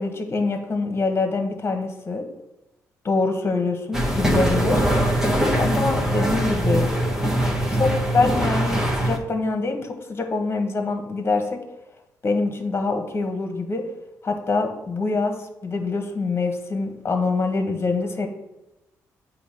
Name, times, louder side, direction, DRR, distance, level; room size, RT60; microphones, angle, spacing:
voice 1, 0.0-2.2 3.0-4.8 5.5-6.9 7.7-11.6 12.2-13.8 14.2-18.3, left 3 dB, 35° left, 5 dB, 1.2 m, -25 dB
sound 1, 3.9-9.2, right 1 dB, 10° right, 1.3 m, -22 dB
7.9 x 2.9 x 5.7 m, 0.94 s
supercardioid pair, 60°, 7 cm